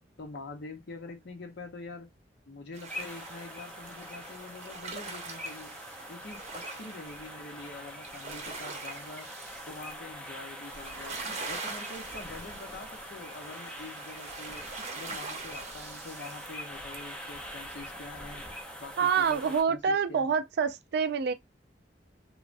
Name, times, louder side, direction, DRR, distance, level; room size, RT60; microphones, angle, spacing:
voice 1, 0.2-2.1 2.5-5.7 6.1-9.3 9.7-11.2 11.5-14.6 14.9-18.4 18.8-20.4, left 3 dB, 70° left, 0.7 m, -45 dB
sound 1, 2.7-17.5, right 4 dB, 40° right, 0.7 m, -44 dB
sound 2, 2.9-19.6, equal, 5° left, 0.6 m, -44 dB
voice 2, 19.0-21.3, right 6 dB, 60° right, 0.3 m, -26 dB
3.2 x 2.1 x 2.5 m
head